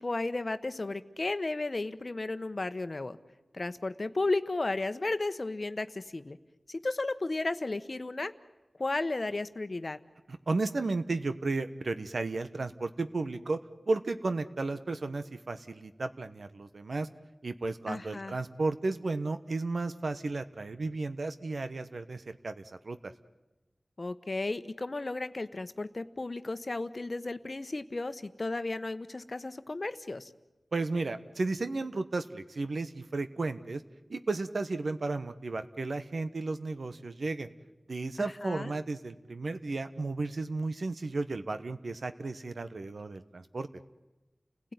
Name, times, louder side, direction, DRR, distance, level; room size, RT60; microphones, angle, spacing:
voice 1, 0.0-3.2 3.5-6.4 6.7-8.3 8.8-10.0 17.9-18.3 24.0-30.3 38.2-38.7, left 2 dB, 55° left, 11 dB, 1.1 m, -34 dB
voice 2, 10.3-13.6 13.9-17.1 17.4-23.1 30.7-33.8 34.1-37.5 37.9-43.7, right 3 dB, 75° right, 10 dB, 1.1 m, -33 dB
30.0 x 16.5 x 9.6 m, 1.1 s
cardioid pair, 45°, 0 cm